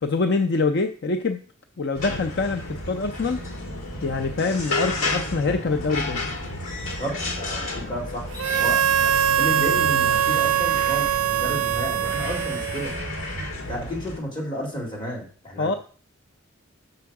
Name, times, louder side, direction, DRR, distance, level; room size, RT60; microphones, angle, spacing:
voice 1, 0.0-1.4 1.8-3.4 4.0-6.2 15.6-15.7, left 3 dB, 55° left, 6 dB, 0.5 m, -25 dB
sound 1, 1.9-14.2, left 2 dB, 75° left, 2.1 m, -32 dB
voice 2, 6.9-9.1 9.4-12.9 13.7-15.8, equal, 20° left, -2 dB, 2.5 m, -32 dB
Harmonica, 8.4-13.2, right 10 dB, 80° right, 0.4 m, -22 dB
6.8 x 6.2 x 4.7 m, 0.43 s
head